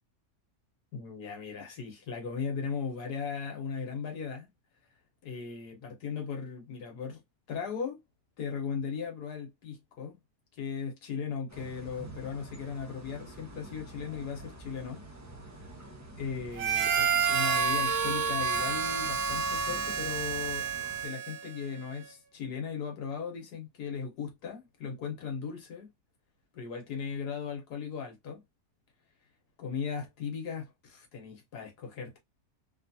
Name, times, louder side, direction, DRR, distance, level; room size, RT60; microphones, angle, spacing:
voice 1, 0.9-4.5 5.2-7.2 7.5-8.0 8.4-10.2 10.5-15.0 15.5-15.7 16.2-20.7 21.0-25.9 26.5-28.4 29.6-32.2, left 6 dB, 80° left, 1.5 m, -37 dB
sound 1, 11.5-21.1, right 1 dB, 20° right, 0.4 m, -47 dB
Harmonica, 16.6-21.6, right 6 dB, 70° right, 1.1 m, -29 dB
3.3 x 2.3 x 2.6 m
omnidirectional pair, 1.7 m